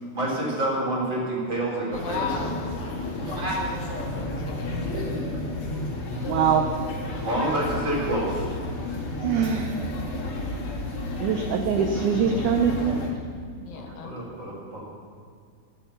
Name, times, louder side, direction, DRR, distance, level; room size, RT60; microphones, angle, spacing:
voice 1, 0.1-2.3 3.2-3.6 7.2-8.4 13.7-14.8, right 1 dB, 30° right, -5 dB, 4.5 m, -28 dB
voice 2, 1.9-2.7 4.1-4.8 13.5-14.1, left 6 dB, 75° left, 3 dB, 2.9 m, -35 dB
sound 1, 1.9-13.1, left 2 dB, 40° left, 3.0 m, -31 dB
voice 3, 6.3-6.7 9.2-9.8 11.2-13.0, right 7 dB, 75° right, 5 dB, 1.9 m, -23 dB
22.5 x 8.5 x 5.8 m, 2.2 s
omnidirectional pair, 4.3 m